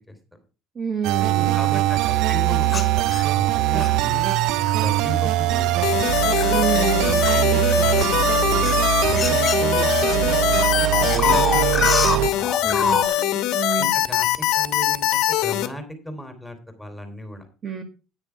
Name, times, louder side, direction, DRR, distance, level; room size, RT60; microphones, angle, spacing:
voice 1, 0.7-1.6 6.5-7.3 12.6-13.9 17.6-17.8, right 7 dB, 30° right, 6 dB, 1.7 m, -28 dB
sound 1, 1.0-12.3, right 14 dB, 70° right, 0.6 m, -21 dB
voice 2, 1.3-4.4 4.8-6.2 7.1-13.1 13.7-17.5, left 1 dB, 5° left, 7 dB, 3.1 m, -36 dB
sound 2, 2.7-3.9 4.7-4.9 5.5-10.2 10.4-13.1, left 6 dB, 25° left, 1.8 m, -26 dB
sound 3, 5.8-15.7, left 14 dB, 70° left, 1.3 m, -23 dB
9.7 x 9.6 x 4.5 m, 0.33 s
cardioid pair, 130°, 0 cm